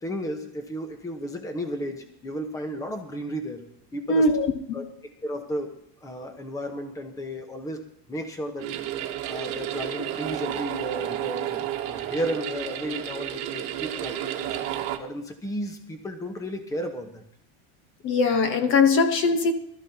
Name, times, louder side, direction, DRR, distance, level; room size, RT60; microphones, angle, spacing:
voice 1, 0.0-3.6 3.9-4.3 4.7-7.8 8.1-8.7 9.3-14.6 15.0-17.2, equal, 10° left, 6 dB, 1.1 m, -33 dB
voice 2, 4.1-4.8 18.0-19.5, left 3 dB, 35° left, 8 dB, 1.1 m, -21 dB
sound 1, 8.6-15.0, right 11 dB, 45° right, 1.4 m, -31 dB
20.5 x 13.5 x 2.9 m, 0.68 s
cardioid pair, 165°, 33 cm